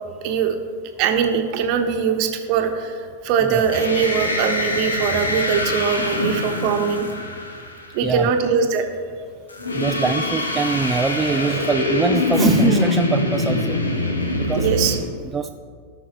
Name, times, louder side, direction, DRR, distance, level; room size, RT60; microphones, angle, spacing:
voice 1, 0.2-0.6 1.0-7.1 7.9-8.8 14.5-15.0, right 6 dB, 45° right, 5 dB, 1.0 m, -21 dB
sound 1, 3.5-8.0 9.5-15.0, left 1 dB, 75° left, 1.1 m, -23 dB
voice 2, 8.0-8.3 9.7-13.8 14.4-14.7 15.3-15.5, right 4 dB, 15° right, 5 dB, 0.3 m, -23 dB
17.5 x 5.8 x 3.1 m, 2.1 s
figure-of-eight pair, 90°, 0 cm